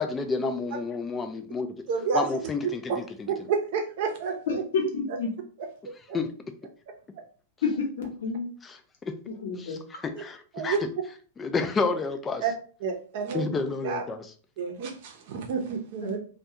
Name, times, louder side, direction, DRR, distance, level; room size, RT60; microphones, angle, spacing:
voice 1, 0.0-1.7 2.1-3.5 6.1-6.3 9.0-9.1 9.6-9.7 10.0-10.9 11.4-12.4 13.3-14.3, left 4 dB, 20° left, 7 dB, 0.3 m, -30 dB
voice 2, 1.9-2.3 2.9-3.0 3.3-4.6 10.5-10.8 12.4-12.5 12.8-13.5 13.8-14.0 14.6-16.2, right 6 dB, 60° right, 3 dB, 0.6 m, -29 dB
voice 3, 4.5-5.3 7.6-8.5 9.3-9.8 16.0-16.2, left 4 dB, 75° left, 1 dB, 0.9 m, -29 dB
2.3 x 2.3 x 2.8 m, 0.41 s
hypercardioid pair, 130°, 0 cm